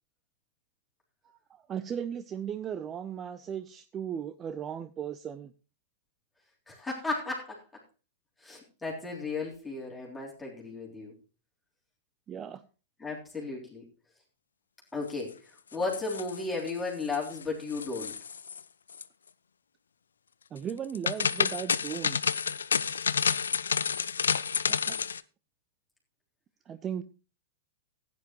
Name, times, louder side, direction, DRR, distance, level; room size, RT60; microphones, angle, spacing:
voice 1, 1.2-5.5 12.3-12.6 20.5-22.2 24.7-25.0 26.7-27.0, right 8 dB, 25° right, 13 dB, 0.5 m, -37 dB
voice 2, 6.7-7.6 8.4-11.1 13.0-13.8 14.9-18.1, left 3 dB, 10° left, -3 dB, 3.5 m, -35 dB
sound 1, 15.7-16.7 17.0-17.4 17.7-18.6 18.9-19.0 20.7-25.2, left 6 dB, 75° left, 0.5 m, -29 dB
16.0 x 9.8 x 3.0 m, 0.33 s
figure-of-eight pair, 105°, 0 cm